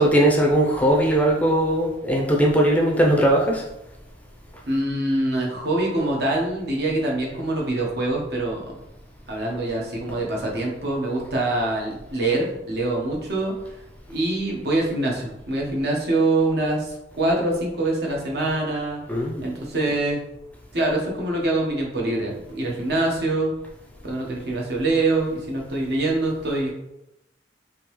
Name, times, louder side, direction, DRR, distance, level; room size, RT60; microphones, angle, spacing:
voice 1, 0.0-3.6 19.1-19.4, right 1 dB, 10° left, -1 dB, 0.4 m, -19 dB
voice 2, 4.7-8.6 9.3-13.5 14.1-19.0 19.4-20.2 20.7-23.5 24.0-26.7, right 2 dB, 60° right, -1 dB, 0.9 m, -24 dB
3.7 x 2.7 x 3.0 m, 0.88 s
head